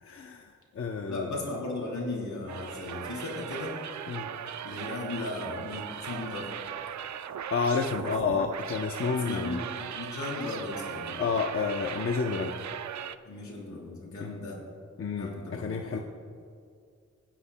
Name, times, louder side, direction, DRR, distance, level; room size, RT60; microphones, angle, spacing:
voice 1, 0.0-1.3 4.1-4.3 7.5-9.6 11.2-12.5 14.2-14.3 15.0-16.0, left 5 dB, 50° left, 2 dB, 0.7 m, -30 dB
voice 2, 1.0-3.8 4.6-6.5 8.0-8.4 9.1-11.2 13.3-14.6 15.1-16.0, left 2 dB, 80° left, -3 dB, 3.7 m, -36 dB
sound 1, 2.5-13.2, right 9 dB, 70° right, 0.5 m, -38 dB
28.5 x 10.0 x 2.2 m, 2.3 s
wide cardioid pair, 135°, 30 cm